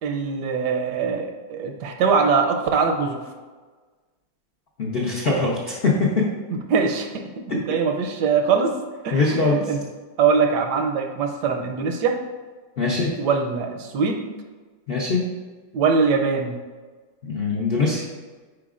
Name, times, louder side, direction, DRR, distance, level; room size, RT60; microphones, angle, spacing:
voice 1, 0.0-3.2 6.5-7.1 7.5-8.7 9.0-9.8 10.2-12.2 13.2-14.3 15.7-16.6, right 5 dB, 75° right, 4 dB, 1.1 m, -22 dB
voice 2, 4.8-6.3 9.1-9.7 12.8-13.1 14.9-15.2 17.2-18.0, left 3 dB, 80° left, -3 dB, 0.5 m, -22 dB
8.2 x 5.0 x 2.4 m, 1.4 s
omnidirectional pair, 2.1 m